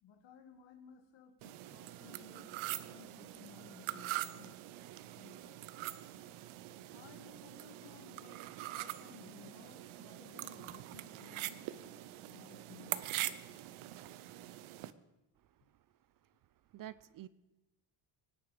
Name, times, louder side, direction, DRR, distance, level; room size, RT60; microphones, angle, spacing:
voice 1, 0.0-2.5 2.8-4.6 5.0-5.6 6.9-11.9 12.3-13.7, left 7 dB, 60° left, 2.2 m, -58 dB
sound 1, 1.4-14.9, right 15 dB, 75° right, 0.9 m, -44 dB
voice 2, 16.7-17.3, right 12 dB, 45° right, 0.5 m, -49 dB
24.0 x 10.0 x 5.1 m
cardioid pair, 165°, 49 cm